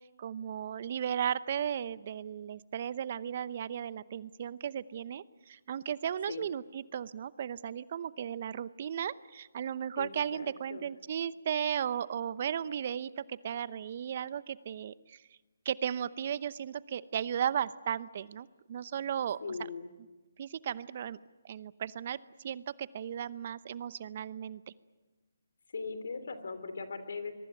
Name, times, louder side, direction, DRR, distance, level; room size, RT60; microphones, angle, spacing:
voice 1, 0.2-15.2 15.6-19.4 20.4-21.2 21.4-22.2 22.4-24.6, right 9 dB, 45° right, 17 dB, 0.8 m, -35 dB
voice 2, 10.0-10.9 19.4-19.9 25.7-27.3, left 4 dB, 70° left, 11 dB, 3.2 m, -39 dB
24.5 x 22.5 x 9.2 m, 1.2 s
figure-of-eight pair, 145°, 0 cm